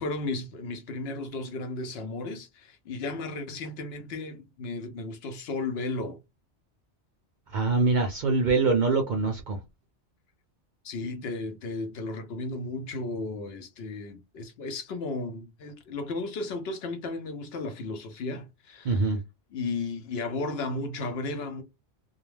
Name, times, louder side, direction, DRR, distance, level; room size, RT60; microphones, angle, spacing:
voice 1, 0.0-6.2 10.8-19.1 19.5-21.6, left 3 dB, 65° left, 0.8 m, -34 dB
voice 2, 7.5-9.6 18.8-19.2, right 3 dB, 60° right, 0.5 m, -24 dB
2.3 x 2.1 x 3.1 m
omnidirectional pair, 1.2 m